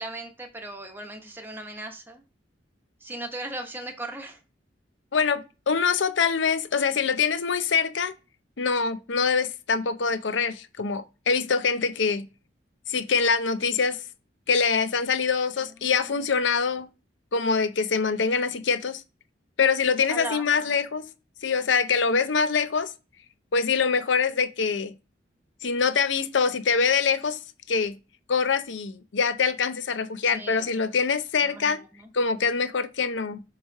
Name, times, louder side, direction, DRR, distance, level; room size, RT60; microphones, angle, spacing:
voice 1, 0.0-2.2 3.0-4.4 15.8-16.3 20.1-20.5 30.3-30.7 31.4-32.1, right 2 dB, 10° right, 1.0 m, -38 dB
voice 2, 5.1-8.1 8.6-12.3 12.9-14.0 14.5-16.9 17.3-19.0 19.6-21.1 21.4-22.9 23.5-24.9 25.6-27.4 27.7-28.0 28.3-31.8 32.1-33.4, left 5 dB, 75° left, 0.6 m, -24 dB
7.2 x 3.1 x 4.6 m
head